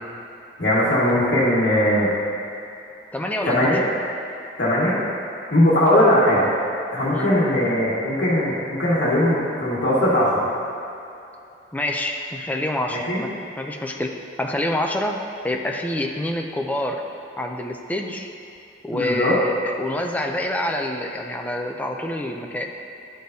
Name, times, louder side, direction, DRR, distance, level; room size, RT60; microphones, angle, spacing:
voice 1, 0.6-2.1 3.4-3.8 4.6-5.0 5.5-6.5 6.9-10.5 12.9-13.2 18.9-19.3, left 1 dB, 65° left, -7 dB, 1.5 m, -19 dB
voice 2, 3.1-3.8 7.1-7.3 11.7-15.2 15.4-17.0 17.4-18.3 18.8-22.7, left 1 dB, 10° left, 2 dB, 0.4 m, -27 dB
11.0 x 6.6 x 2.7 m, 2.7 s
head